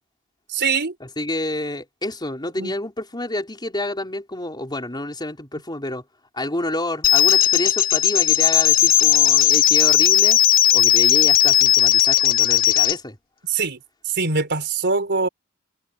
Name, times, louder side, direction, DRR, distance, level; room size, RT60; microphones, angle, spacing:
voice 1, 0.5-0.9 2.6-2.8 13.5-13.8 14.1-15.3, right 4 dB, 55° right, 4.1 m, -23 dB
voice 2, 1.0-6.0 6.3-10.4 10.7-13.2, left 1 dB, 20° left, 4.8 m, -28 dB
sound 1, 7.0-13.0, left 12 dB, 40° left, 0.5 m, -16 dB
head